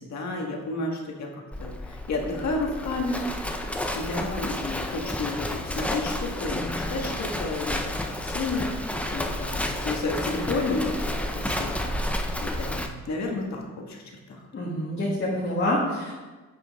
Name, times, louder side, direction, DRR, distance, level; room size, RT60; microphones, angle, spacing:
voice 1, 0.0-3.2 3.9-7.8 8.2-11.0 11.3-11.8 12.4-14.0 14.3-14.4, left 3 dB, 65° left, 0 dB, 1.6 m, -31 dB
Livestock farm animals working animals, 1.5-12.9, left 1 dB, 5° left, 0.5 m, -31 dB
voice 2, 14.5-16.1, left 1 dB, 40° left, -6 dB, 1.7 m, -26 dB
9.7 x 7.4 x 3.6 m, 1.3 s
wide cardioid pair, 165°, 30 cm